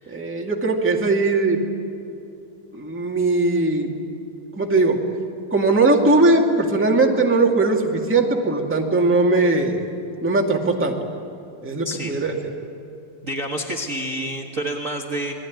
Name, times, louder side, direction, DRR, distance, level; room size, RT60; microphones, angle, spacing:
voice 1, 0.1-1.6 2.7-3.9 4.5-5.0 5.5-9.8 10.2-11.0 11.6-12.3, right 2 dB, 5° right, 0 dB, 1.2 m, -19 dB
voice 2, 11.8-12.2 13.2-15.3, right 1 dB, 55° right, 0 dB, 0.8 m, -28 dB
27.5 x 21.5 x 9.5 m, 2.7 s
omnidirectional pair, 4.4 m